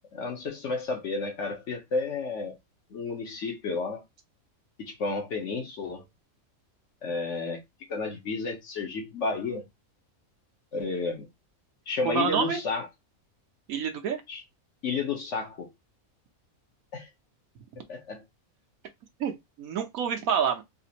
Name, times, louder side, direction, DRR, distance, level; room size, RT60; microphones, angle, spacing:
voice 1, 0.1-2.6 2.9-4.0 4.8-6.0 7.0-7.6 7.9-9.6 10.7-11.3 11.9-12.9 14.3-14.4 14.8-15.7 16.9-17.1 17.8-18.2, left 4 dB, 60° left, 1.2 m, -31 dB
voice 2, 12.0-12.6 13.7-14.2 19.2-20.6, right 7 dB, 75° right, 1.3 m, -28 dB
4.2 x 2.5 x 2.8 m
omnidirectional pair, 1.5 m